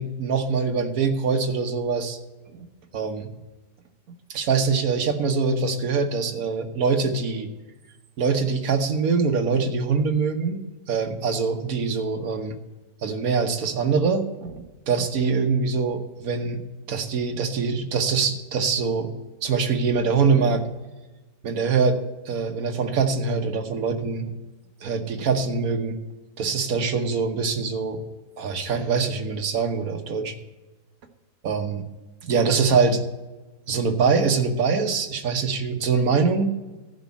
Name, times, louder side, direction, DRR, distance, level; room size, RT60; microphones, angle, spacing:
voice 1, 0.0-2.2 2.5-2.7 2.9-3.3 4.3-7.5 8.2-10.6 10.9-12.6 13.0-19.1 19.4-20.6 21.4-22.0 22.2-24.3 24.8-26.0 26.4-28.0 28.4-30.4 31.4-31.8 32.2-33.0 33.7-36.5, right 5 dB, 60° right, 6 dB, 1.4 m, -23 dB
14.5 x 5.4 x 7.1 m, 1.1 s
omnidirectional pair, 1.8 m